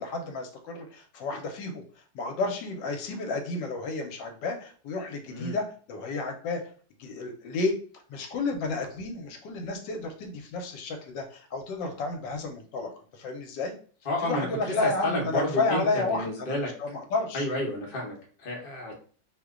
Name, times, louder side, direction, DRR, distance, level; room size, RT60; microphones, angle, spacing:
voice 1, 0.0-1.8 2.1-6.6 7.0-7.7 8.1-13.7 14.2-17.5, left 3 dB, 80° left, 4 dB, 1.3 m, -31 dB
voice 2, 14.0-16.7 17.3-18.9, left 1 dB, 45° left, -1 dB, 0.7 m, -31 dB
3.0 x 2.1 x 3.5 m, 0.43 s
omnidirectional pair, 2.0 m